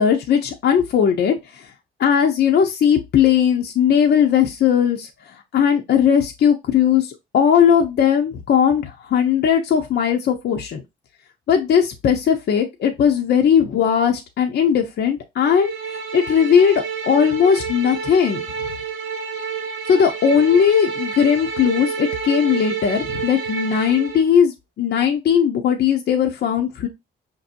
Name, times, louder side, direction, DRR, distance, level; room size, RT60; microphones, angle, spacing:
voice 1, 0.0-1.7 2.0-10.8 11.5-18.4 19.9-26.9, left 8 dB, 60° left, 0.6 m, -18 dB
sound 1, 15.4-24.3, right 5 dB, 85° right, 0.9 m, -29 dB
5.2 x 2.7 x 2.5 m
cardioid pair, 90°, 20 cm